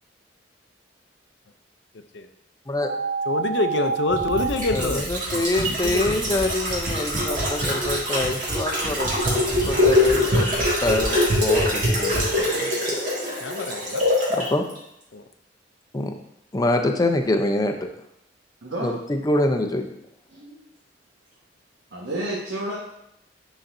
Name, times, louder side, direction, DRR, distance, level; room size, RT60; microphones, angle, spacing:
voice 1, 1.9-2.3 3.3-6.4 13.4-14.0 15.1-15.2, left 2 dB, 70° left, 8 dB, 0.5 m, -27 dB
sound 1, 2.8-4.4, right 5 dB, 45° left, 1.1 m, -27 dB
sound 2, 4.1-14.5 14.7-14.8, left 1 dB, 50° right, 1.9 m, -23 dB
voice 2, 4.7-12.2 12.5-13.0 14.3-14.7 15.9-16.1 16.5-17.8 18.8-19.9, left 1 dB, 20° left, 4 dB, 0.6 m, -25 dB
voice 3, 18.6-18.9 20.3-20.6 21.9-22.8, right 1 dB, 85° right, -5 dB, 1.3 m, -30 dB
10.0 x 4.0 x 2.6 m, 0.82 s
head